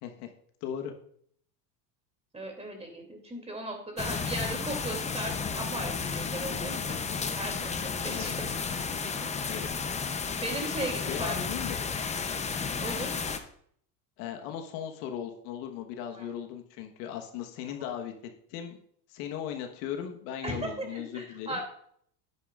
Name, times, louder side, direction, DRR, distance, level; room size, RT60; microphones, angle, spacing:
voice 1, 0.6-0.9 8.1-8.3 9.5-9.7 11.1-11.8 14.2-18.1 18.5-18.8 19.1-21.6, left 9 dB, 70° left, 4 dB, 1.4 m, -37 dB
voice 2, 2.3-9.7 10.3-11.3 12.8-13.2 16.1-16.3 17.8-17.9 20.4-21.6, right 1 dB, 15° right, 3 dB, 2.6 m, -38 dB
sound 1, 4.0-13.4, left 5 dB, 15° left, 0.6 m, -33 dB
9.9 x 9.8 x 2.4 m, 0.65 s
supercardioid pair, 110°, 48 cm